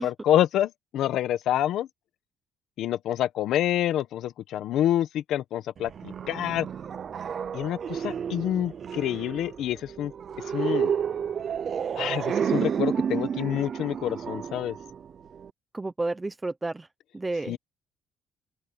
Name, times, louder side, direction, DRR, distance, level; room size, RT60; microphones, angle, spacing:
voice 1, 0.0-1.9 2.8-6.7 7.5-10.1 10.5-10.9 12.0-14.7 17.5-17.6, left 12 dB, 70° left, 1.1 m, -27 dB
sound 1, 5.8-15.5, right 7 dB, 40° right, 0.6 m, -31 dB
voice 2, 15.7-16.9 17.1-17.6, right 2 dB, 15° right, 0.9 m, -31 dB
open air
cardioid pair, 150°, 0 cm